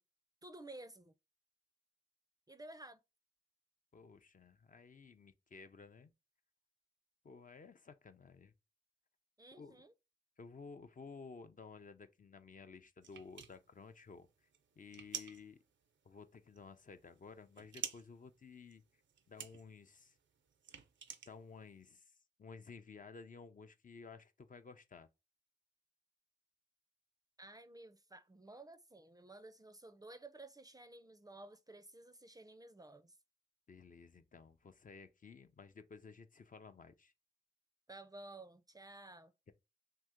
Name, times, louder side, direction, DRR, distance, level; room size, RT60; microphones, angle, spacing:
voice 1, 0.4-1.1 2.5-3.0 9.4-9.9 27.4-33.2 37.9-39.3, right 2 dB, 20° right, 0.4 m, -54 dB
voice 2, 3.9-6.1 7.2-8.5 9.6-9.8 10.4-14.3 14.8-15.6 16.0-18.8 19.3-20.2 21.3-22.1 22.4-25.1 33.7-37.1, left 5 dB, 45° left, 0.5 m, -54 dB
sound 1, 13.0-21.9, right 8 dB, 80° right, 0.5 m, -50 dB
2.8 x 2.7 x 3.5 m
cardioid pair, 40°, 19 cm